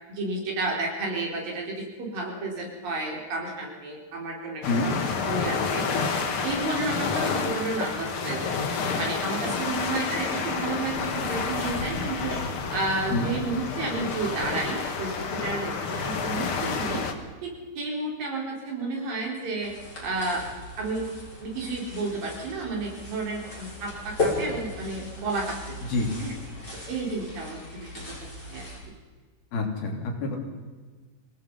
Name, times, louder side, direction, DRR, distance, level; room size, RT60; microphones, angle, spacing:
voice 1, 0.1-5.0 5.3-5.8 6.4-8.6 9.0-12.4 12.7-17.0 17.4-19.7 20.0-20.4 20.8-21.0 21.4-25.6 26.2-26.3 26.9-28.0 28.5-28.7, right 2 dB, 65° right, 0 dB, 5.9 m, -31 dB
sound 1, 4.6-17.1, left 5 dB, 50° left, 1.8 m, -29 dB
sound 2, 9.5-17.3, right 2 dB, 25° right, 5.1 m, -49 dB
sound 3, 19.6-28.8, left 2 dB, 25° left, 7.6 m, -36 dB
voice 2, 29.5-30.4, left 3 dB, 70° left, 2 dB, 5.0 m, -27 dB
26.0 x 18.0 x 5.6 m, 1.4 s
omnidirectional pair, 4.4 m